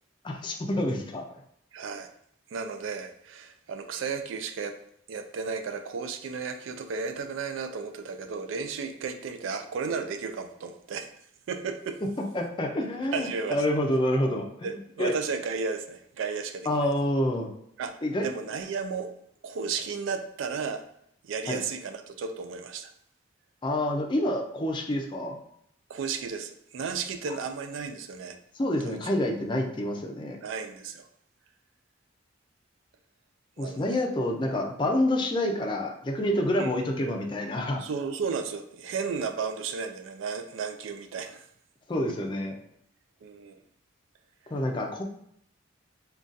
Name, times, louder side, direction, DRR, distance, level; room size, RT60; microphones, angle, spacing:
voice 1, 0.2-1.2 12.3-15.1 16.7-17.5 18.0-18.2 21.5-21.6 23.6-25.4 28.5-30.4 33.6-37.8 41.9-42.6 44.5-45.0, left 1 dB, 25° left, 1 dB, 0.4 m, -28 dB
voice 2, 1.7-2.1 2.5-4.8 5.1-11.1 11.5-12.0 13.1-13.7 14.6-16.9 17.8-17.9 18.2-19.1 19.4-20.8 21.2-22.9 25.9-28.4 28.8-29.0 30.4-31.1 33.6-34.1 36.6-36.7 37.8-41.5 43.2-43.6, right 5 dB, 75° right, 8 dB, 0.3 m, -34 dB
3.8 x 2.3 x 2.5 m, 0.70 s
head